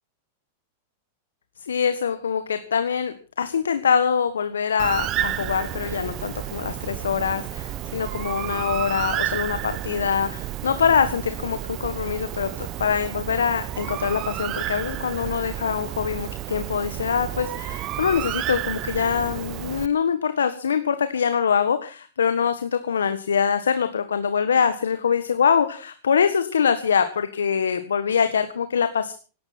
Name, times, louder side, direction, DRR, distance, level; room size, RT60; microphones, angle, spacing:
voice 1, 1.6-29.1, left 7 dB, 80° left, 10 dB, 1.5 m, -24 dB
Bird, 4.8-19.9, right 13 dB, 40° right, 0.9 m, -31 dB
17.5 x 12.5 x 5.9 m, 0.38 s
hypercardioid pair, 100°, 0 cm